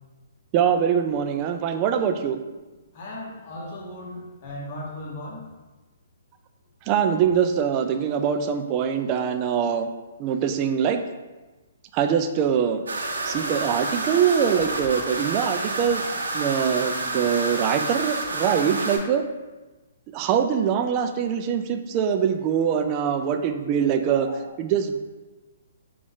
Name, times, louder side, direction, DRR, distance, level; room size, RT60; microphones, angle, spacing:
voice 1, 0.5-2.4 6.9-9.9 10.2-11.0 11.9-12.8 13.2-16.0 16.3-19.2 20.1-24.3 24.6-25.0, right 8 dB, 30° right, 7 dB, 0.3 m, -23 dB
voice 2, 2.9-5.4 24.2-24.5, left 1 dB, 40° left, -3 dB, 1.2 m, -37 dB
sound 1, 12.9-19.0, right 2 dB, 85° right, 0.7 m, -29 dB
3.8 x 2.4 x 3.7 m, 1.2 s
hypercardioid pair, 140°, 0 cm